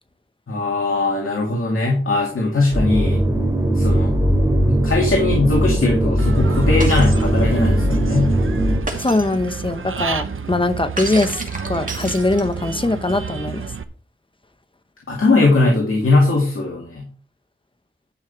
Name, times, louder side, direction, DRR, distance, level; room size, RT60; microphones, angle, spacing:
voice 1, 0.5-3.2 3.7-4.2 4.7-8.4 15.1-17.1, left 2 dB, 80° left, 2.2 m, -19 dB
sound 1, 2.7-8.8, equal, 15° right, 2.6 m, -18 dB
Human voice / Bird, 6.2-13.8, right 6 dB, 75° right, 0.9 m, -30 dB
Shatter, 6.8-7.2 8.9-9.4 11.0-12.7, right 2 dB, 40° right, 2.3 m, -30 dB
voice 2, 9.0-13.7, left 2 dB, 25° left, 0.9 m, -21 dB
11.0 x 5.6 x 4.6 m
wide cardioid pair, 80°, 21 cm